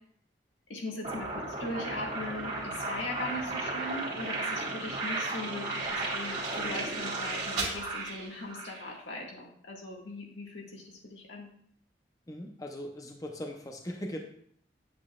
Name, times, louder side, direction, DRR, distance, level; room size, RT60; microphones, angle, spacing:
voice 1, 0.7-11.5, left 2 dB, 85° left, -1 dB, 1.8 m, -39 dB
sound 1, 1.0-8.8, right 2 dB, 40° right, 1.9 m, -34 dB
voice 2, 12.3-14.2, equal, 20° left, 2 dB, 0.7 m, -39 dB
8.5 x 8.1 x 2.4 m, 0.63 s
head